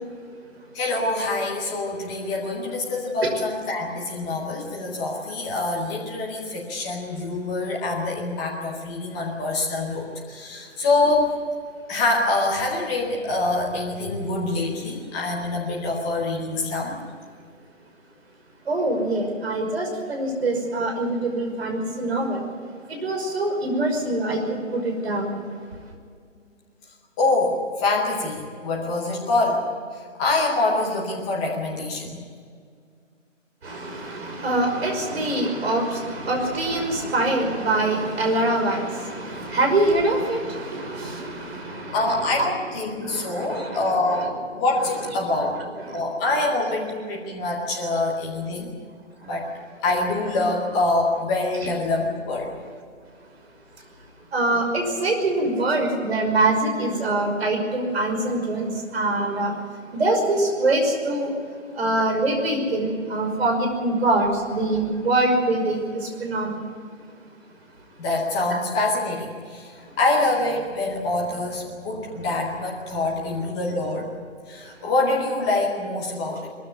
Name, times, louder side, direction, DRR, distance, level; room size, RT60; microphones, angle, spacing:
voice 1, 0.7-11.3 11.9-17.0 27.2-29.6 30.2-32.2 41.9-44.3 44.5-45.6 45.9-48.7 49.2-49.5 49.8-52.5 68.0-69.7 70.0-74.1 74.5-76.5, left 2 dB, 5° left, -2 dB, 0.7 m, -25 dB
voice 2, 18.7-22.4 22.9-25.4 33.6-42.5 43.0-43.9 45.8-46.0 54.3-59.5 59.9-61.3 61.8-66.6, right 2 dB, 55° right, 3 dB, 5.7 m, -24 dB
21.5 x 14.5 x 9.6 m, 2.2 s
figure-of-eight pair, 155°, 38 cm